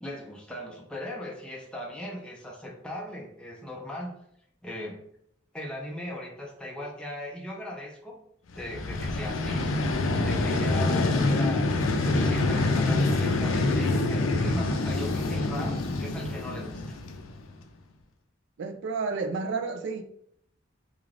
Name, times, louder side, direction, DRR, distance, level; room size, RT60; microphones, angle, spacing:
voice 1, 0.0-4.2 4.6-5.0 5.5-8.2 8.5-9.7 10.2-17.0, left 1 dB, 5° left, 0.4 m, -38 dB
Vehicle, 8.6-17.5, left 2 dB, 85° left, 0.4 m, -26 dB
voice 2, 18.6-20.0, right 4 dB, 60° right, 0.3 m, -31 dB
2.4 x 2.3 x 3.2 m
head